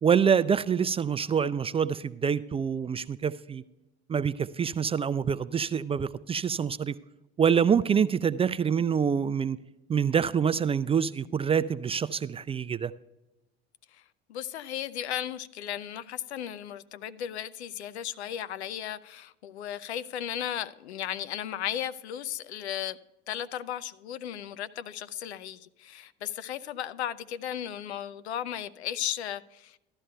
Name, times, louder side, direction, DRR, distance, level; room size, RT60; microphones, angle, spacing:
voice 1, 0.0-3.6 4.1-7.0 7.4-9.6 9.9-12.9, right 7 dB, 20° right, 0.3 m, -26 dB
voice 2, 14.3-23.0 23.3-29.8, left 10 dB, 85° left, 0.6 m, -35 dB
15.0 x 12.0 x 2.3 m
hypercardioid pair, 65°, 32 cm